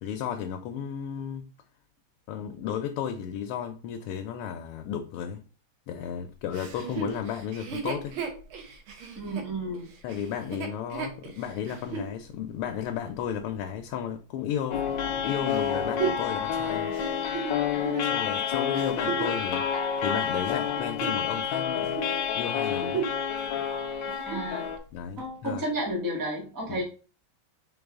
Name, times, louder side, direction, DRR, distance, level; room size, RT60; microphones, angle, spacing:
voice 1, 0.0-1.5 2.3-5.4 5.9-8.2 10.0-16.9 18.0-22.0 22.3-23.1 24.9-25.6 26.7-26.8, left 8 dB, 90° left, 1.5 m, -34 dB
Chuckle chortle, 6.5-12.1 12.7-12.8 15.5-19.4 20.1-21.5 21.8-22.1 22.5-23.3 23.6-23.7 24.1-24.5 25.2-25.3, right 6 dB, 75° right, 1.7 m, -35 dB
voice 2, 9.2-9.9 24.2-24.7 25.2-26.8, right 1 dB, 15° right, 0.8 m, -32 dB
sound 1, 14.7-24.8, left 8 dB, 70° left, 1.2 m, -29 dB
3.9 x 3.7 x 3.5 m
omnidirectional pair, 2.4 m